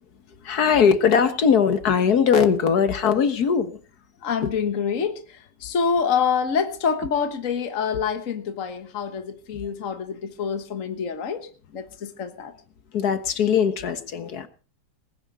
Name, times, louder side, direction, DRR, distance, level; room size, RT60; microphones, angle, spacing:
voice 1, 0.4-3.8 4.4-4.5 9.5-9.6 12.9-14.5, left 7 dB, 70° left, 11 dB, 1.8 m, -20 dB
voice 2, 4.2-12.5, left 6 dB, 50° left, 8 dB, 1.7 m, -26 dB
20.0 x 9.8 x 5.5 m, 0.37 s
omnidirectional pair, 1.8 m